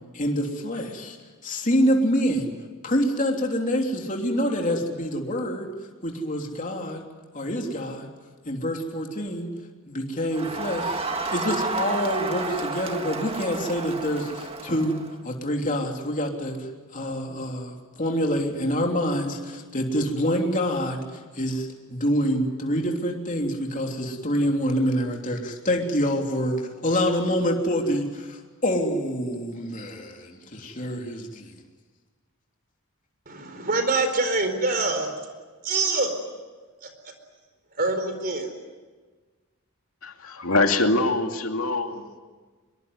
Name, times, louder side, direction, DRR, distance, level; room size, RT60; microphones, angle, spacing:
voice 1, 0.1-1.2 1.4-2.5 2.8-5.7 6.0-7.0 7.3-8.1 8.4-9.5 9.8-11.0 11.3-16.6 16.9-21.0 21.3-31.5, equal, 35° left, 2 dB, 3.3 m, -26 dB
Crowd, 10.3-15.1, right 3 dB, 25° right, 1.8 m, -31 dB
voice 2, 33.3-35.1 35.6-36.1 36.8-36.9 37.8-38.5, right 3 dB, 40° right, 7 dB, 4.3 m, -25 dB
voice 3, 40.0-42.2, left 2 dB, 70° left, 4 dB, 2.6 m, -24 dB
25.0 x 22.5 x 9.6 m, 1.4 s
head